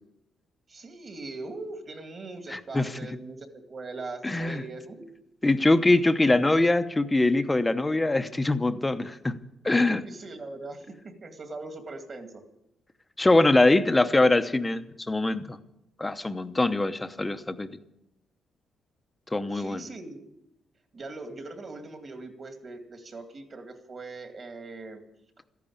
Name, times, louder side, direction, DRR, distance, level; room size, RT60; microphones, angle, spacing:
voice 1, 0.7-5.1 10.0-12.4 19.5-20.3 20.9-25.0, right 3 dB, 35° right, 6 dB, 2.3 m, -41 dB
voice 2, 2.5-3.0 4.2-4.6 5.4-9.4 9.6-10.0 13.2-15.6 16.0-17.7 19.3-19.8, left 2 dB, 15° left, 10 dB, 0.8 m, -23 dB
14.5 x 10.5 x 8.7 m, 0.84 s
cardioid pair, 135°, 0 cm